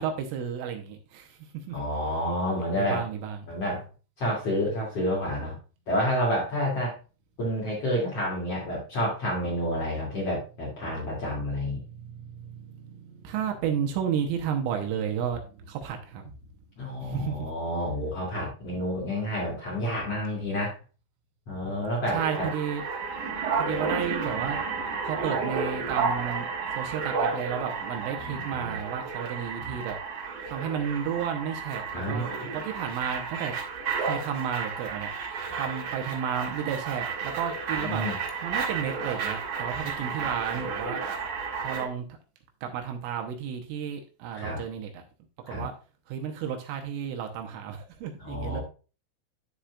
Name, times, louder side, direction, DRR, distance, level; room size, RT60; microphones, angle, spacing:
voice 1, 0.0-1.8 2.8-3.5 11.8-16.3 17.0-17.5 22.1-22.8 23.6-24.6 25.0-26.5 26.8-30.0 30.5-32.2 32.5-33.5 34.0-38.0 38.4-41.0 41.6-42.1 42.6-45.0 45.5-45.7 46.1-48.6, right 8 dB, 80° right, 4 dB, 3.4 m, -32 dB
voice 2, 1.7-3.0 3.5-3.8 4.2-5.6 5.9-6.9 7.4-11.8 16.8-20.8 21.5-22.4 28.2-28.8 29.6-29.7 31.9-32.2 37.7-38.1 44.3-44.6 45.5-45.7 48.2-48.6, equal, 40° left, -5 dB, 2.7 m, -29 dB
sound 1, 22.1-41.9, right 5 dB, 55° right, 2.3 m, -32 dB
13.0 x 4.9 x 2.4 m, 0.34 s
omnidirectional pair, 6.0 m